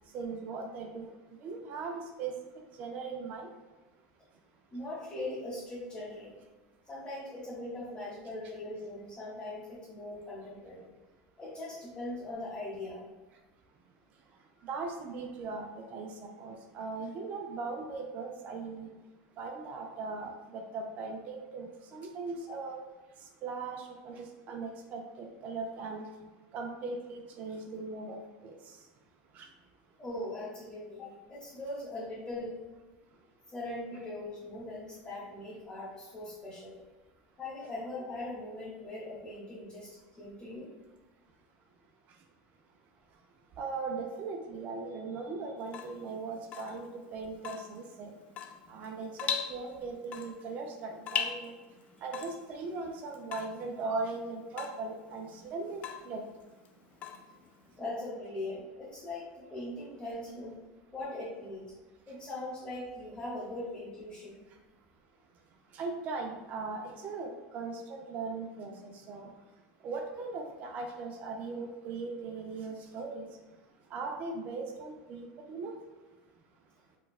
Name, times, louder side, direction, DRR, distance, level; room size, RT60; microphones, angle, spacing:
voice 1, 0.1-2.3 2.8-3.5 14.6-18.9 19.4-22.8 23.4-26.1 26.5-28.8 29.3-29.5 43.6-48.1 48.7-51.5 52.0-56.2 65.7-69.3 69.8-73.3 73.9-75.8, right 4 dB, 40° right, 1 dB, 0.4 m, -39 dB
voice 2, 4.7-6.3 6.9-10.9 11.4-13.0 30.0-32.6 33.5-36.8 37.4-40.7 57.8-60.5 60.9-61.6 62.1-64.4, left 2 dB, 15° left, -9 dB, 0.9 m, -40 dB
Water tap faucet / Drip, 45.6-57.8, left 8 dB, 35° left, 0.3 m, -41 dB
4.3 x 2.3 x 2.3 m, 1.3 s
supercardioid pair, 145°, 4 cm